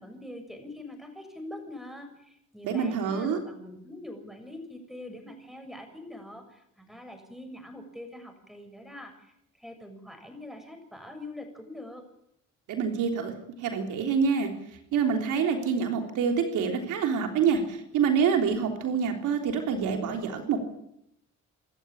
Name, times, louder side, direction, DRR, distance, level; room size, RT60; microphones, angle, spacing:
voice 1, 0.0-12.1, left 1 dB, ahead, 6 dB, 7.1 m, -44 dB
voice 2, 2.6-3.4 12.7-13.3 13.6-14.5 14.9-20.6, right 6 dB, 85° right, 4 dB, 3.4 m, -26 dB
27.0 x 13.5 x 8.9 m, 0.76 s
cardioid pair, 90°, 30 cm